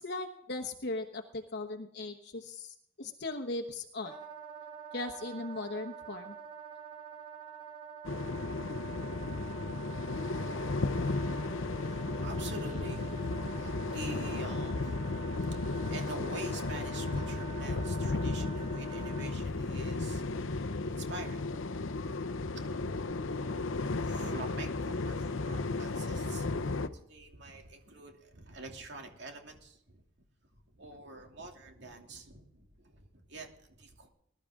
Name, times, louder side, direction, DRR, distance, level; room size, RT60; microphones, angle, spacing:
voice 1, 0.0-4.1 4.9-6.4, left 2 dB, 55° left, 1.1 m, -38 dB
Wind instrument woodwind instrument, 4.0-19.3, right 7 dB, 40° right, 2.2 m, -47 dB
sound 1, 8.0-26.9, left 3 dB, 75° left, 0.8 m, -34 dB
voice 2, 11.6-21.7 22.4-22.6 23.3-26.5 26.9-30.0 30.6-34.1, right 2 dB, 55° right, 2.7 m, -46 dB
21.0 x 12.0 x 3.7 m
head